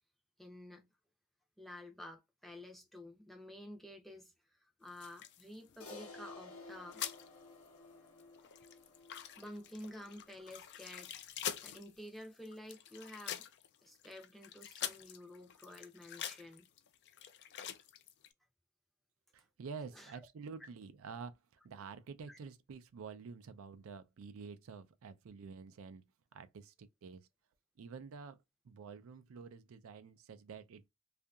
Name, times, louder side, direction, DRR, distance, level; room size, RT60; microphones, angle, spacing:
voice 1, 0.4-0.9 1.6-7.0 9.4-13.5 13.8-16.7 19.9-20.2 22.3-22.4, left 1 dB, ahead, 0.5 m, -51 dB
sound 1, 4.9-6.3 6.6-7.3 7.6-7.7 8.1-18.3, left 10 dB, 50° left, 0.3 m, -46 dB
Crash cymbal, 5.8-10.4, left 3 dB, 75° left, 0.8 m, -54 dB
voice 2, 19.3-21.4 21.6-27.3 27.8-28.4 28.6-30.9, right 5 dB, 65° right, 0.4 m, -49 dB
2.7 x 2.4 x 2.2 m
head